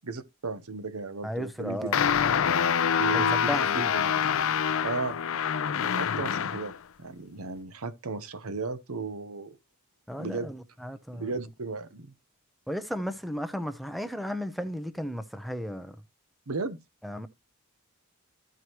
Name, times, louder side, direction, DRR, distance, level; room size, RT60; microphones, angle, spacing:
voice 1, 0.1-1.9 3.0-4.1 4.8-5.2 5.8-6.7 7.0-9.6 10.2-10.5 11.1-12.1 16.5-16.8, right 4 dB, 80° right, 0.9 m, -35 dB
voice 2, 1.2-2.0 3.1-3.9 10.1-11.3 12.7-16.0 17.0-17.3, equal, ahead, 0.6 m, -34 dB
sound 1, 1.9-6.7, left 7 dB, 65° left, 0.5 m, -26 dB
14.0 x 4.7 x 2.9 m
head